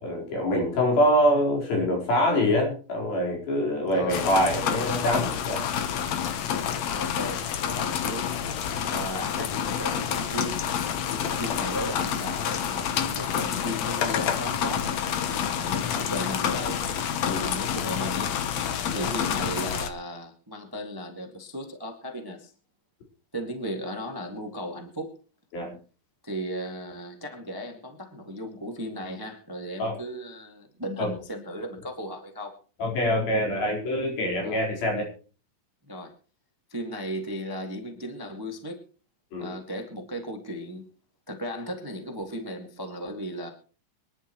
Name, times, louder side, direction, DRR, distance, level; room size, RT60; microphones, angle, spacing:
voice 1, 0.0-5.6 11.1-11.4 17.3-17.5 18.9-19.1 25.5-25.8 29.8-30.0 31.0-31.1 32.8-35.1 39.3-39.5, equal, 80° left, -1 dB, 6.2 m, -25 dB
voice 2, 3.9-4.2 6.9-8.4 8.9-10.7 11.4-12.9 13.1-14.9 15.3-16.8 17.2-18.3 18.6-22.5 23.3-25.2 26.2-32.6 34.4-34.6 35.8-36.1 36.7-38.8 39.4-40.8 41.3-43.5, equal, 10° right, 4 dB, 1.1 m, -36 dB
sound 1, 4.1-19.9, left 8 dB, 65° left, 2.0 m, -28 dB
24.5 x 11.0 x 3.1 m, 0.37 s
omnidirectional pair, 4.1 m